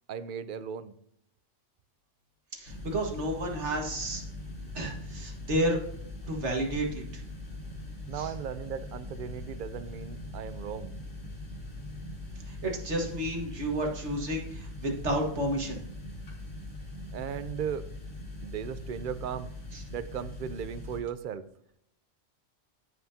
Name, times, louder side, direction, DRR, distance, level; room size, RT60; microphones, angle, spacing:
voice 1, 0.1-0.9 8.1-11.0 17.1-17.9 18.4-19.5 19.9-21.4, right 8 dB, 55° right, 13 dB, 0.7 m, -36 dB
voice 2, 2.5-4.2 4.7-5.8 6.3-7.2 8.1-8.3 12.5-15.8 19.7-19.8, right 1 dB, 70° right, 1 dB, 2.0 m, -31 dB
sound 1, 2.7-21.0, left 2 dB, 80° left, 2.5 m, -41 dB
15.0 x 5.8 x 2.8 m, 0.73 s
omnidirectional pair, 1.2 m